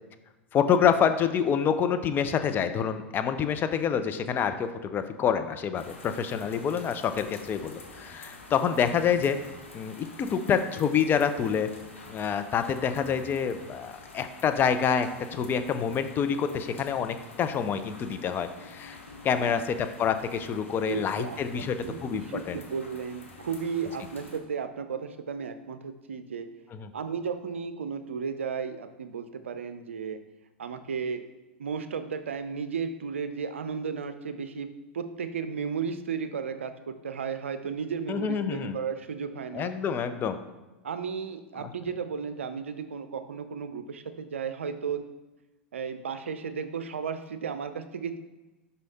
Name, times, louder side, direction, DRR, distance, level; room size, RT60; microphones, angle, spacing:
voice 1, 0.5-9.4 9.7-11.7 12.1-19.0 19.2-22.6 26.7-26.9 38.1-38.8 39.5-40.4 41.6-41.7, left 7 dB, 30° left, 9 dB, 0.5 m, -27 dB
sound 1, 5.8-24.4, left 3 dB, 85° left, 1.1 m, -48 dB
voice 2, 20.9-26.5 26.9-30.2 30.6-31.2 31.6-34.7 34.9-39.7 40.8-45.1 45.7-48.2, right 6 dB, 80° right, 10 dB, 0.5 m, -34 dB
5.5 x 4.8 x 4.1 m, 1.1 s
hypercardioid pair, 90°, 7 cm